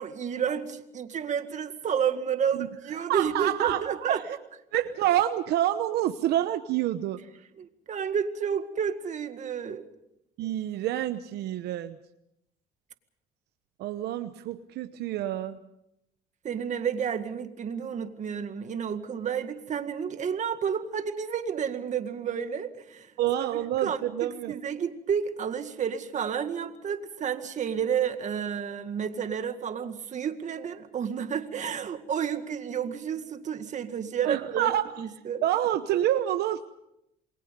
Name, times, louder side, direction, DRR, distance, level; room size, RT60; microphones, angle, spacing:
voice 1, 0.0-4.2 7.6-9.8 16.4-23.1 23.4-34.7 35.0-35.4, right 7 dB, 45° right, 2.0 m, -31 dB
voice 2, 3.1-4.2 4.7-7.2 10.4-12.0 13.8-15.6 23.2-24.5 34.2-34.9 35.4-36.7, right 12 dB, 80° right, 1.0 m, -27 dB
28.0 x 22.0 x 5.4 m
cardioid pair, 110°, 17 cm